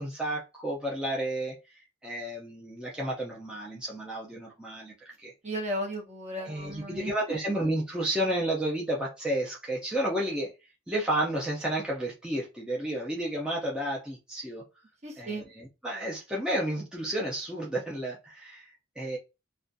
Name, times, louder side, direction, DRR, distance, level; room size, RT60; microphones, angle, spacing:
voice 1, 0.0-4.9 5.2-5.3 6.4-10.5 10.9-14.6 15.2-19.2, right 1 dB, 5° right, 0.4 m, -32 dB
voice 2, 5.4-7.1 15.0-15.5, right 1 dB, 35° right, 0.8 m, -35 dB
2.4 x 2.2 x 2.5 m
head